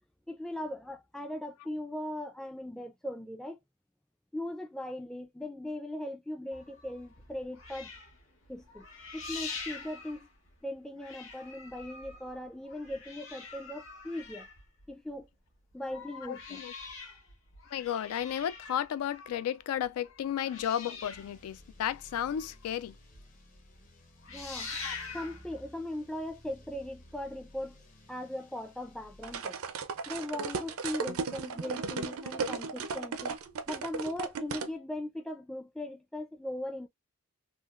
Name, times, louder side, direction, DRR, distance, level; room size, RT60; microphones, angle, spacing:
voice 1, 0.3-3.6 4.3-7.9 8.5-8.9 9.1-10.3 10.6-14.5 14.9-15.3 15.7-16.6 24.3-24.7 25.1-27.8 28.1-29.6 30.1-33.4 33.7-36.9, left 1 dB, 5° left, 0.3 m, -39 dB
sound 1, 6.5-10.7 11.0-15.2 15.7-22.8 23.1-23.2 23.6-23.8 24.1-25.5 26.3-26.4, left 4 dB, 60° left, 1.2 m, -45 dB
voice 2, 16.2-16.7 17.7-23.0 24.8-24.9, left 10 dB, 85° left, 0.3 m, -33 dB
sound 2, 21.1-29.4, equal, 35° left, 0.7 m, -55 dB
sound 3, 29.2-34.7, right 5 dB, 75° right, 0.5 m, -35 dB
3.6 x 2.3 x 2.4 m
head